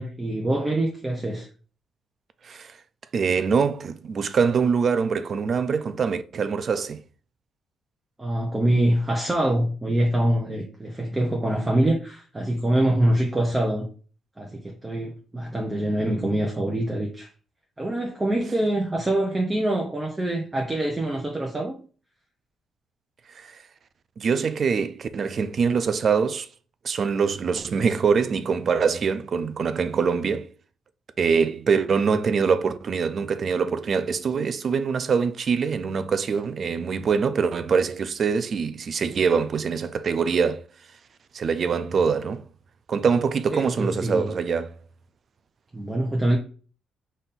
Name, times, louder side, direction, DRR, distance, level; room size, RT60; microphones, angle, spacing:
voice 1, 0.0-1.5 8.2-13.9 14.4-17.3 17.8-21.8 43.5-44.3 45.7-46.4, right 1 dB, 15° right, 0.7 m, -24 dB
voice 2, 2.4-2.8 3.1-7.0 23.3-23.6 24.2-26.5 26.8-30.5 31.2-40.6 41.3-42.4 42.9-44.7, right 5 dB, 50° right, 0.4 m, -24 dB
4.1 x 2.6 x 3.6 m
cardioid pair, 105°, 0 cm